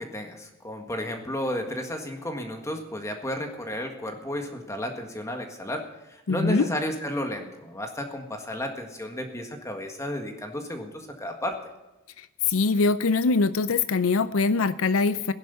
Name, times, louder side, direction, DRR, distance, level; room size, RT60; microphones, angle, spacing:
voice 1, 0.0-5.8 6.1-11.5, left 1 dB, 15° left, 4 dB, 1.7 m, -32 dB
voice 2, 6.3-6.7 12.5-15.3, left 4 dB, 85° left, 14 dB, 0.6 m, -23 dB
16.5 x 11.0 x 6.9 m, 1.0 s
head